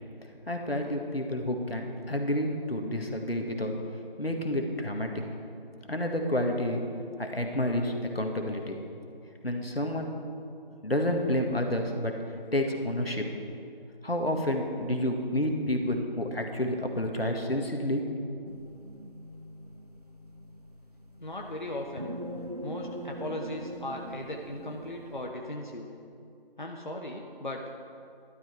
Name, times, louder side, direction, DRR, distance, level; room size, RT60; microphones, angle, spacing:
voice 1, 0.5-3.7 4.2-5.1 5.9-6.8 7.2-8.8 9.4-10.2 10.8-12.1 12.5-13.2 14.0-18.0, left 1 dB, 85° left, 3 dB, 1.8 m, -29 dB
sound 1, 18.4-25.3, equal, 40° right, 0.7 m, -42 dB
voice 2, 21.2-22.1 22.6-25.9 26.6-27.7, left 1 dB, 55° left, 1 dB, 1.0 m, -37 dB
12.0 x 11.5 x 4.6 m, 2.5 s
figure-of-eight pair, 175°, 29 cm